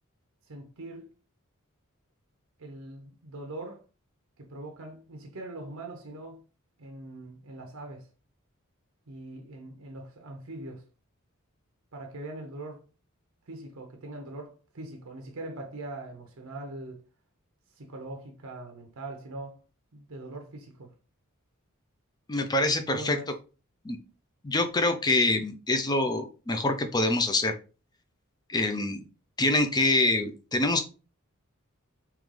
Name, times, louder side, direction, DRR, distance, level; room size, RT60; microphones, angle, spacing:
voice 1, 0.5-1.1 2.6-3.8 4.4-6.4 6.8-8.1 9.1-10.8 11.9-12.8 13.5-17.0 17.7-19.6 19.9-20.9 22.9-23.3, right 2 dB, 70° right, 0.7 m, -41 dB
voice 2, 22.3-23.2 23.8-24.0 24.4-27.6 28.5-29.0 29.4-30.8, left 2 dB, 20° left, 0.5 m, -25 dB
3.7 x 3.0 x 3.2 m
head